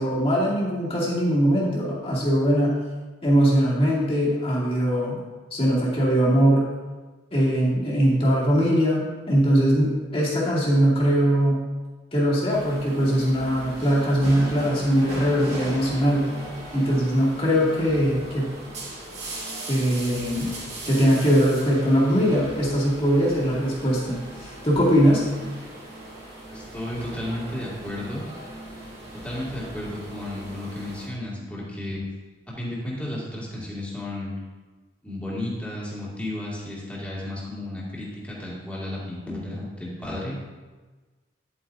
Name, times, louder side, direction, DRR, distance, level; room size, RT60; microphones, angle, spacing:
voice 1, 0.0-2.7 3.2-5.2 5.5-6.7 7.3-11.6 12.1-16.3 16.7-18.5 19.7-20.5 20.9-24.2 24.6-25.2, equal, 30° left, -6 dB, 2.5 m, -21 dB
sound 1, 12.5-31.1, right 1 dB, 35° right, 2.5 m, -38 dB
voice 2, 26.5-28.3 29.2-32.0 32.6-34.3 35.0-40.4, left 1 dB, 5° left, -7 dB, 2.2 m, -33 dB
10.5 x 8.6 x 2.7 m, 1.3 s
head